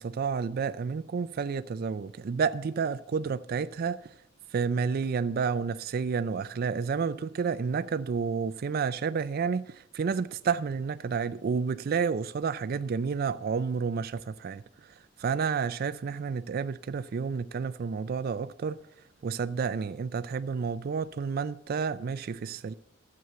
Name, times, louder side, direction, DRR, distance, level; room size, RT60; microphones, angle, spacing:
voice 1, 0.0-4.2 4.5-18.8 19.2-22.7, right 5 dB, 50° right, 0.4 m, -30 dB
12.5 x 7.8 x 6.8 m
head